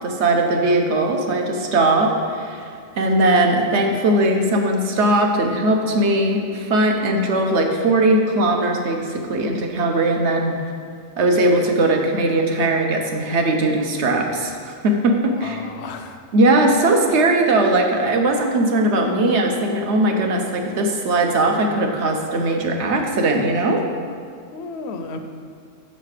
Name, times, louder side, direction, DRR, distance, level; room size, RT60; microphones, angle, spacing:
voice 1, 0.0-2.7 3.0-10.6 11.2-15.6 16.3-23.8, right 2 dB, 60° right, 3 dB, 1.0 m, -19 dB
voice 2, 15.4-16.2 24.5-25.2, left 3 dB, 60° left, 6 dB, 0.8 m, -33 dB
6.6 x 5.6 x 4.9 m, 2.2 s
omnidirectional pair, 1.4 m